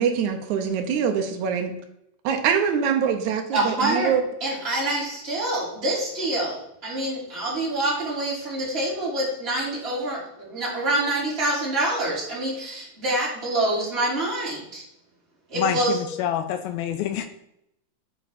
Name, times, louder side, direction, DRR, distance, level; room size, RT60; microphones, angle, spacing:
voice 1, 0.0-1.7 2.2-4.2, right 7 dB, 75° right, 5 dB, 1.7 m, -24 dB
voice 2, 3.5-4.1 4.4-14.8 15.5-16.0, right 1 dB, 15° right, -7 dB, 4.3 m, -26 dB
voice 3, 15.6-17.3, left 9 dB, 80° left, 9 dB, 2.3 m, -27 dB
9.1 x 7.4 x 4.3 m, 0.78 s
omnidirectional pair, 4.7 m